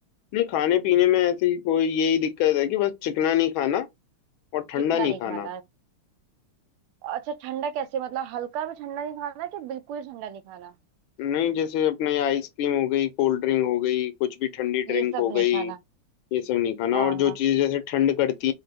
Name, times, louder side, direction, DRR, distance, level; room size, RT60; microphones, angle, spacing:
voice 1, 0.3-3.9 4.5-5.5 11.2-15.7 16.3-18.5, left 11 dB, 75° left, 1.3 m, -24 dB
voice 2, 4.9-5.6 7.0-10.8 14.9-15.8 16.9-17.4, right 9 dB, 85° right, 1.5 m, -33 dB
4.1 x 2.2 x 3.4 m
omnidirectional pair, 2.3 m